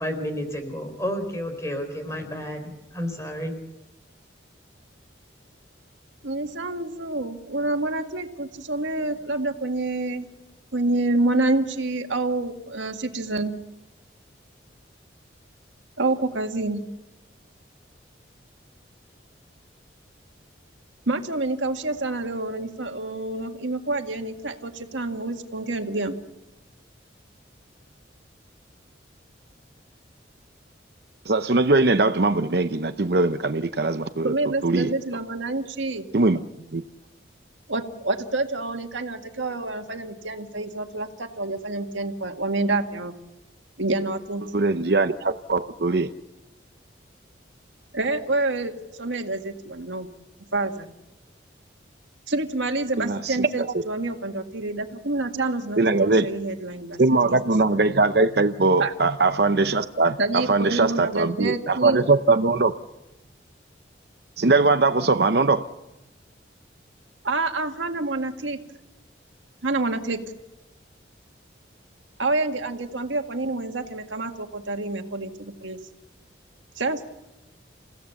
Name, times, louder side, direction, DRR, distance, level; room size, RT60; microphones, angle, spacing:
voice 1, 0.0-3.5, equal, 15° left, 6 dB, 4.2 m, -31 dB
voice 2, 6.2-10.3 10.7-13.5 16.0-16.8 21.1-26.2 34.2-36.1 37.7-43.2 43.8-44.4 47.9-48.7 49.0-50.1 50.5-50.9 52.3-57.4 58.8-58.9 60.2-62.1 67.2-68.6 69.6-70.2 72.2-75.8 76.8-77.1, right 2 dB, 90° right, 5 dB, 1.9 m, -27 dB
voice 3, 31.3-34.3 34.6-34.9 36.1-36.4 36.7-36.8 44.5-46.1 53.0-53.7 55.8-56.3 57.0-62.7 64.4-65.7, right 3 dB, 60° right, 10 dB, 0.7 m, -21 dB
29.0 x 16.5 x 7.1 m, 0.99 s
head